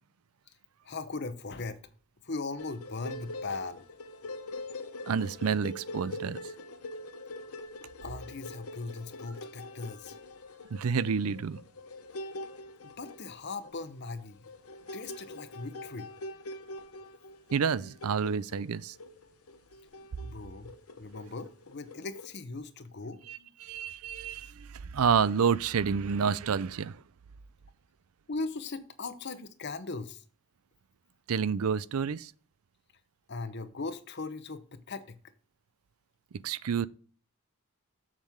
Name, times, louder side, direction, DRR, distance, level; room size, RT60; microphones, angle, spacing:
voice 1, 0.8-1.8 2.2-3.8 8.0-10.2 12.8-14.4 14.9-16.1 20.2-23.5 28.3-30.2 33.3-35.2, left 3 dB, 50° left, 0.8 m, -39 dB
sound 1, 2.6-22.4, left 2 dB, 85° left, 0.9 m, -44 dB
voice 2, 5.1-6.4 10.7-11.6 17.5-18.9 23.3-24.7 24.9-27.0 31.3-32.3 36.4-36.9, right 6 dB, 85° right, 0.5 m, -29 dB
7.5 x 7.3 x 3.6 m
head